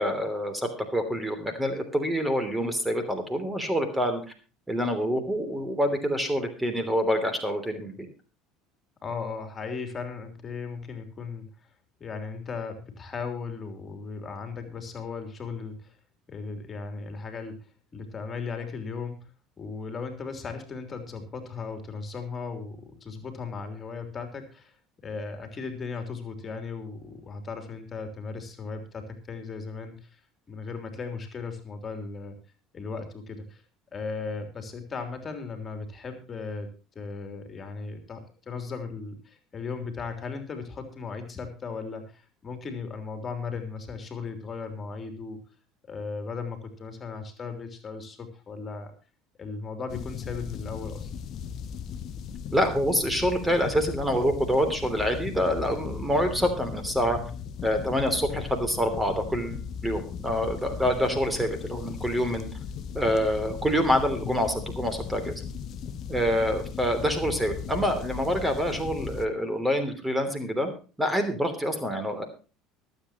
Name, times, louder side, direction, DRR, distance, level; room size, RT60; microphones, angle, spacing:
voice 1, 0.0-4.2 4.7-8.1 52.5-57.2 57.6-62.5 62.9-65.4 66.1-70.7 71.0-72.2, equal, 10° right, 8 dB, 3.0 m, -26 dB
voice 2, 9.0-11.5 12.0-16.0 16.3-17.7 17.9-19.3 19.6-30.2 30.5-32.4 32.7-33.6 33.9-36.7 36.9-45.4 45.9-48.9 49.4-51.1, left 4 dB, 30° left, 6 dB, 3.2 m, -37 dB
sound 1, 49.9-69.2, left 7 dB, 50° left, 1.0 m, -37 dB
24.0 x 8.2 x 3.0 m, 0.36 s
figure-of-eight pair, 65°, 0 cm